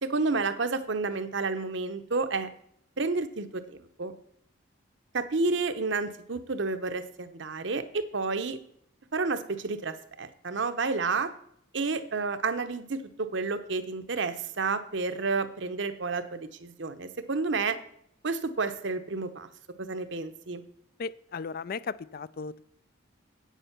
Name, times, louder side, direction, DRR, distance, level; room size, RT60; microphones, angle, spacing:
voice 1, 0.0-2.5 3.0-4.2 5.1-8.6 9.1-11.3 11.7-17.8 18.2-19.5 19.8-20.6, right 4 dB, 60° right, 10 dB, 0.8 m, -30 dB
voice 2, 21.0-22.6, left 5 dB, 45° left, 18 dB, 0.3 m, -36 dB
8.8 x 8.2 x 5.9 m, 0.71 s
head